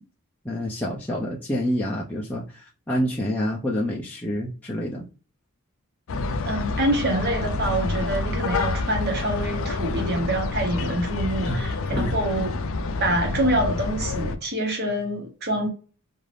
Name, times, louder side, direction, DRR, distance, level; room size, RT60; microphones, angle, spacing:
voice 1, 0.4-5.1 11.4-12.2, equal, 5° left, 0.4 m, -28 dB
sound 1, 6.1-14.3, left 3 dB, 60° left, 0.4 m, -28 dB
voice 2, 6.5-12.5 13.0-15.7, right 1 dB, 45° right, 1.0 m, -26 dB
2.5 x 2.5 x 3.3 m
head